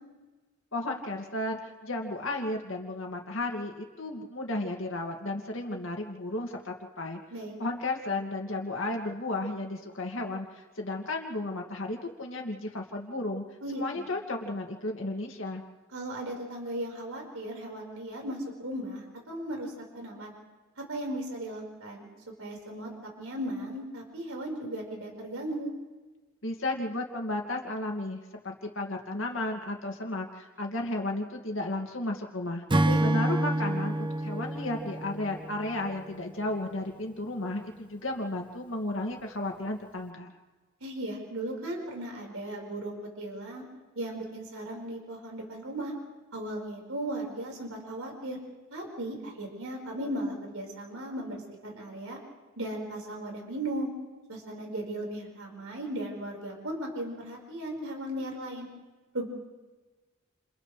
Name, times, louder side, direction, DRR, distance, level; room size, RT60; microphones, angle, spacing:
voice 1, 0.7-7.2 7.6-13.4 13.7-15.6 26.4-32.6 33.0-40.4, left 2 dB, 65° left, 1 dB, 2.3 m, -33 dB
voice 2, 13.6-14.0 15.9-20.3 20.8-22.1 22.4-25.7 32.9-33.1 40.8-43.6 43.9-45.9 46.3-48.4 48.7-52.2 52.6-53.9 54.3-58.7 59.1-59.3, right 1 dB, 85° right, 0 dB, 5.0 m, -36 dB
Acoustic guitar / Strum, 32.7-36.1, right 1 dB, 25° right, 0.8 m, -28 dB
30.0 x 28.5 x 3.3 m, 1.3 s
head